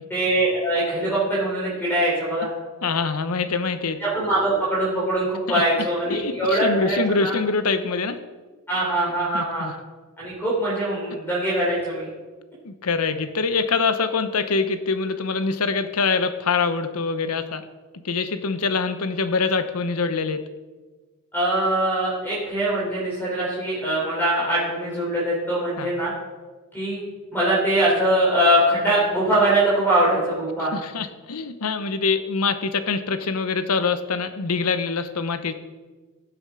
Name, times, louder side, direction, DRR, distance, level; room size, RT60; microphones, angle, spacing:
voice 1, 0.1-2.5 4.0-7.3 8.7-9.7 10.2-12.1 21.3-26.1 26.7-27.0 27.3-30.7, right 1 dB, 10° left, -6 dB, 3.6 m, -22 dB
voice 2, 2.8-4.0 5.5-5.6 6.1-8.2 9.3-9.7 12.6-17.6 18.0-20.4 25.8-25.9 30.7-35.5, left 4 dB, 85° left, 10 dB, 0.9 m, -24 dB
16.0 x 7.2 x 4.9 m, 1.3 s
head